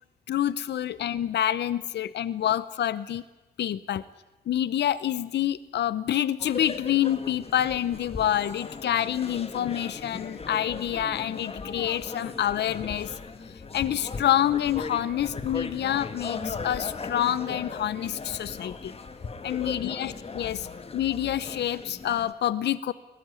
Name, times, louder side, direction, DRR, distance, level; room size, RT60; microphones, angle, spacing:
voice 1, 0.3-3.2 3.6-4.0 4.5-13.2 13.7-18.9 19.4-20.7 20.9-22.9, left 11 dB, 80° left, 16 dB, 0.8 m, -27 dB
sound 1, 6.4-22.3, left 4 dB, 35° left, 1.6 m, -38 dB
22.0 x 19.5 x 9.7 m, 1.1 s
wide cardioid pair, 120°, 17 cm